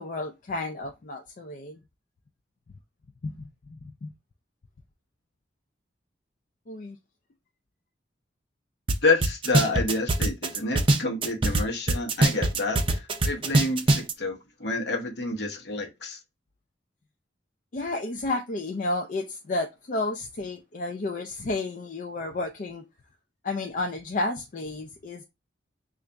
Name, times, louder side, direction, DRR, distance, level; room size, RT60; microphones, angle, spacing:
voice 1, 0.0-1.8 3.2-3.4 3.7-4.1 6.7-7.0 17.7-22.8 23.4-25.2, left 2 dB, 45° left, 0.4 m, -31 dB
sound 1, 8.9-9.0 9.2-11.6 11.9-14.1, right 2 dB, 30° right, 0.5 m, -21 dB
voice 2, 9.0-16.2, left 3 dB, 65° left, 1.0 m, -28 dB
3.9 x 2.5 x 3.3 m
head